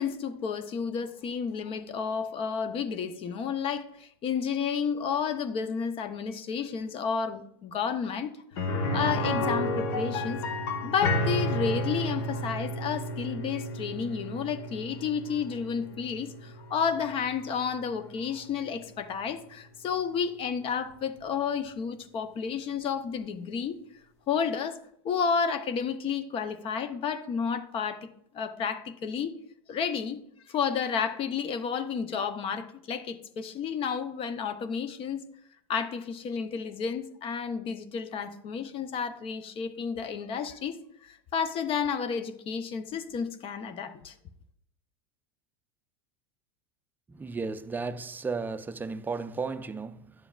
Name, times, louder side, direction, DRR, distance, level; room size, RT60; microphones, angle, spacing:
voice 1, 0.0-8.3 8.9-23.8 24.3-28.1 28.3-29.4 29.7-30.2 30.5-35.2 35.7-44.1, left 6 dB, 40° left, 0.8 m, -31 dB
sound 1, 8.6-18.3 18.6-18.7 21.2-21.3, left 1 dB, 70° left, 1.2 m, -32 dB
voice 2, 47.1-50.1, right 4 dB, 15° right, 0.5 m, -34 dB
11.0 x 6.9 x 2.4 m
hypercardioid pair, 90°, 14 cm